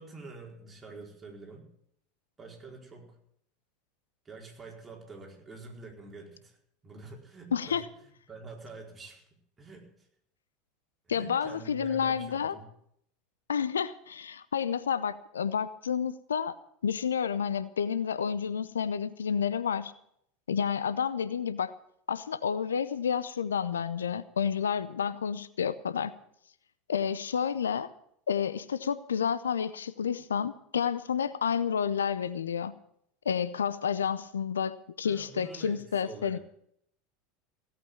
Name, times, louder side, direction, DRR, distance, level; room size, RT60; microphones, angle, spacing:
voice 1, 0.0-1.7 2.4-3.2 4.2-6.6 6.8-7.8 8.3-9.3 9.6-10.1 11.0-12.7 35.0-36.4, right 3 dB, 20° right, -1 dB, 4.5 m, -46 dB
voice 2, 7.5-7.8 11.1-12.6 13.5-16.5 16.8-19.9 20.5-21.7 22.1-26.1 26.9-27.9 28.3-32.7 33.2-36.4, left 7 dB, 75° left, 15 dB, 0.7 m, -30 dB
16.5 x 8.6 x 8.6 m, 0.70 s
figure-of-eight pair, 75°, 0 cm